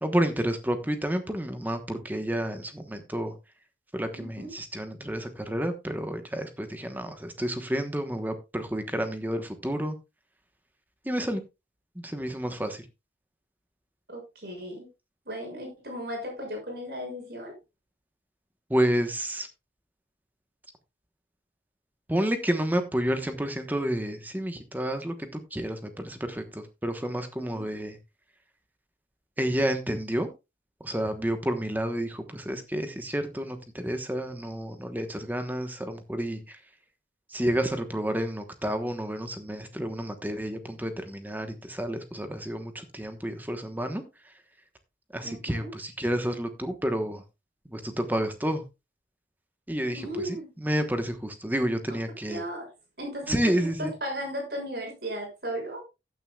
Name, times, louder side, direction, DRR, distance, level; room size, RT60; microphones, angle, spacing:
voice 1, 0.0-3.3 3.9-9.9 11.0-11.4 12.0-12.8 18.7-19.5 22.1-28.0 29.4-30.3 30.8-36.6 37.3-44.3 45.1-47.2 47.6-48.6 49.7-52.4 53.3-53.9, right 1 dB, 10° right, 7 dB, 1.1 m, -30 dB
voice 2, 4.2-4.5 14.1-14.9 15.3-17.5 27.4-27.7 45.2-45.7 49.9-50.5 52.3-52.7 53.0-53.4 53.8-55.8, equal, 55° right, 1 dB, 6.6 m, -36 dB
15.0 x 9.4 x 2.3 m, 0.25 s
head